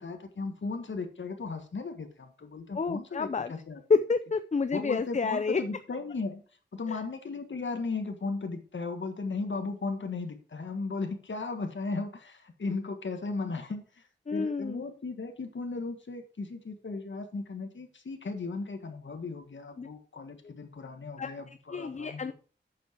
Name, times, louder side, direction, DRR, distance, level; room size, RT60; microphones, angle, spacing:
voice 1, 0.0-3.8 4.7-6.4 6.7-22.3, left 3 dB, 75° left, 5 dB, 1.6 m, -36 dB
voice 2, 2.7-3.5 3.9-5.6 6.9-7.0 14.3-14.8 19.8-19.9 21.2-21.3 21.7-22.3, left 4 dB, 40° left, 12 dB, 0.5 m, -29 dB
9.1 x 7.3 x 4.4 m, 0.39 s
wide cardioid pair, 75°, 19 cm